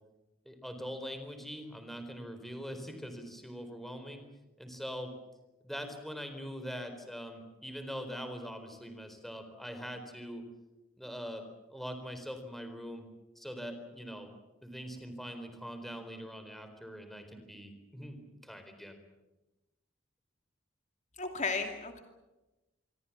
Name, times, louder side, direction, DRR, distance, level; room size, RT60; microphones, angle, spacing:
voice 1, 0.5-4.2 4.6-5.1 5.6-10.4 11.0-13.1 13.4-14.3 14.6-19.0, equal, ahead, 7 dB, 4.0 m, -43 dB
voice 2, 21.2-22.0, left 4 dB, 40° left, 5 dB, 2.5 m, -34 dB
26.5 x 23.5 x 7.3 m, 1.0 s
head